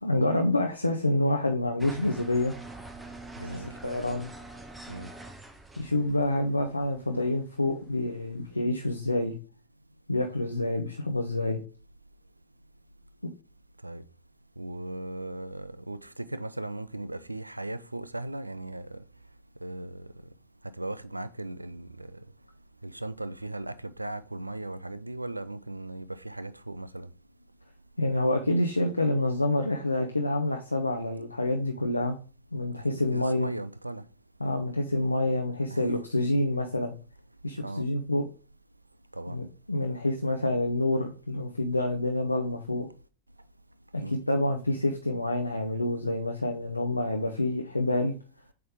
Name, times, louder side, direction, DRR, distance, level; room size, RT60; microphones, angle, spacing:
voice 1, 0.0-2.5 3.4-4.3 5.8-9.4 10.1-11.6 28.0-32.2 32.5-33.5 34.4-36.9 37.4-38.2 39.3-42.9 43.9-48.1, left 1 dB, 85° left, 0.6 m, -27 dB
sound 1, 1.8-8.5, right 2 dB, 10° right, 0.7 m, -45 dB
voice 2, 3.4-3.7 4.9-5.1 13.8-14.0 14.6-19.0 19.6-20.0 20.8-22.2 22.8-27.1 32.9-34.0 35.7-35.9 37.6-37.8 39.1-39.4 44.0-44.2, right 2 dB, 85° right, 0.4 m, -37 dB
7.8 x 3.3 x 3.6 m
figure-of-eight pair, 90°, 0 cm